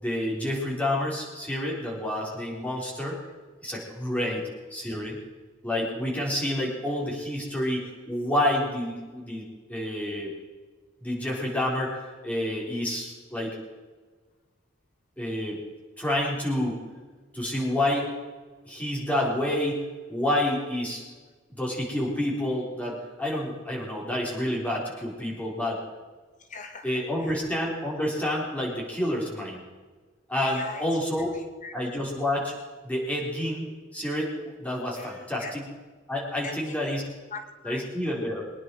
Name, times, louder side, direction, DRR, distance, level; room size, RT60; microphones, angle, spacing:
voice 1, 0.0-3.2 3.6-4.4 4.7-5.2 5.6-10.3 11.0-13.6 15.2-15.6 16.0-16.8 17.3-18.1 18.7-21.1 21.6-25.8 26.8-29.6 30.3-31.4 31.7-32.5 32.8-35.7 36.1-37.1 37.6-38.4, left 1 dB, 5° left, -3 dB, 4.0 m, -29 dB
voice 2, 26.5-26.9 27.2-27.4 30.5-30.8 31.3-31.8 35.0-35.5 36.4-36.8 37.3-37.9, left 4 dB, 40° left, 7 dB, 0.9 m, -40 dB
23.5 x 10.0 x 4.7 m, 1.4 s
head